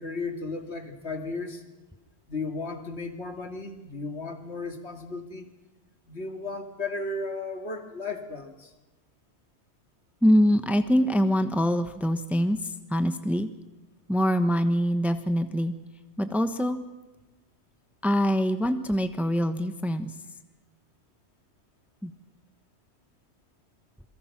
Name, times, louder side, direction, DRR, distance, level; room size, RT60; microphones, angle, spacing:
voice 1, 0.0-1.6 2.3-5.5 6.1-8.7, left 3 dB, 70° left, 5 dB, 2.5 m, -35 dB
voice 2, 10.2-12.6 12.9-13.5 14.1-15.7 16.2-16.8 18.0-20.1 22.0-22.1, equal, ahead, 9 dB, 1.1 m, -24 dB
27.5 x 22.5 x 6.0 m, 1.1 s
omnidirectional pair, 1.2 m